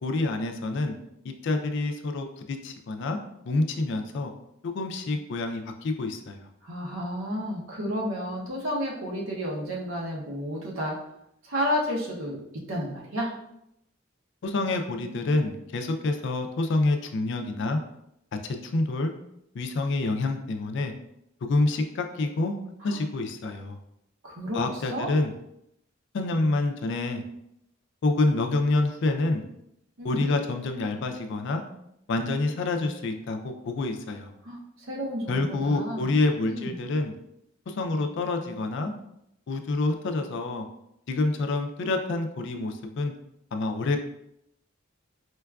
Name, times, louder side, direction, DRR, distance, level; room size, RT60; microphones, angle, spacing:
voice 1, 0.0-1.0 1.2-3.2 3.4-4.3 4.6-6.5 14.4-17.8 18.4-19.1 19.5-20.9 21.4-22.6 22.8-23.8 24.5-25.3 26.1-27.2 28.0-29.4 30.0-31.6 32.1-34.3 35.3-37.1 37.7-38.9 39.5-40.7 41.1-43.1 43.5-44.0, left 2 dB, 65° left, 6 dB, 0.4 m, -27 dB
voice 2, 6.6-11.0 11.4-12.4 12.7-13.3 22.8-23.0 24.2-25.1 30.0-30.3 34.4-36.7, equal, 80° right, -2 dB, 0.7 m, -31 dB
4.5 x 2.3 x 2.3 m, 0.79 s
head